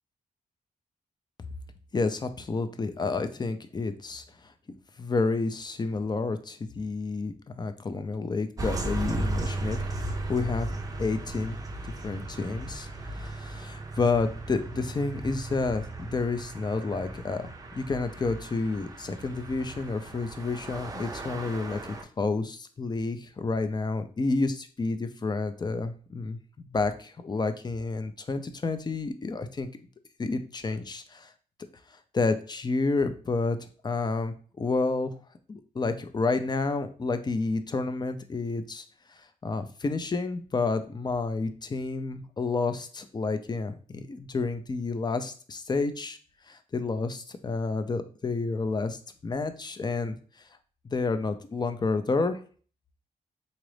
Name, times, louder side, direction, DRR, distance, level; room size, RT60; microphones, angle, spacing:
voice 1, 1.9-4.2 5.0-10.7 11.0-11.6 11.8-17.4 17.8-21.8 22.2-26.4 26.7-29.7 30.2-31.3 32.1-33.6 33.8-35.1 35.5-38.8 39.4-46.2 46.5-49.0 49.2-50.1 50.9-52.4, left 3 dB, 30° left, 9 dB, 0.5 m, -30 dB
sound 1, 8.6-22.0, right 2 dB, 25° right, 0.5 m, -36 dB
4.0 x 2.4 x 3.2 m, 0.41 s
cardioid pair, 90°, 15 cm